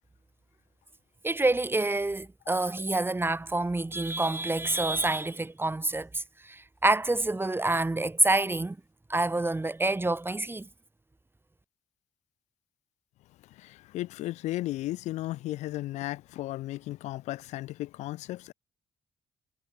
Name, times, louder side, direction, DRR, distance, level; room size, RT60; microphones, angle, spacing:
voice 1, 1.2-6.2 6.5-8.8 9.1-10.7, right 2 dB, 20° right, 2.7 m, -27 dB
voice 2, 13.5-18.5, left 16 dB, 90° left, 0.7 m, -35 dB
supercardioid pair, 60°, 12 cm